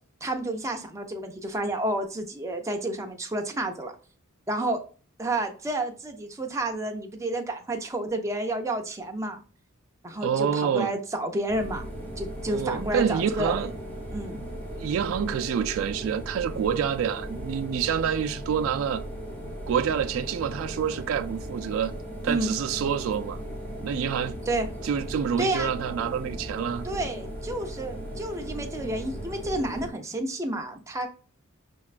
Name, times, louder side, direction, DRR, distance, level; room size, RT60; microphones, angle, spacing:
voice 1, 0.2-3.9 4.5-4.8 5.2-9.4 10.0-11.9 12.2-13.7 14.1-14.4 22.3-22.5 24.5-24.7 25.4-25.7 26.8-31.1, right 1 dB, 15° right, 0.5 m, -30 dB
voice 2, 10.2-10.9 12.5-13.7 14.8-19.0 19.7-21.9 22.2-23.4 23.8-24.4 24.8-26.9, right 8 dB, 70° right, 0.3 m, -27 dB
sound 1, 11.5-29.9, right 1 dB, 10° left, 1.0 m, -37 dB
5.9 x 2.2 x 2.4 m
head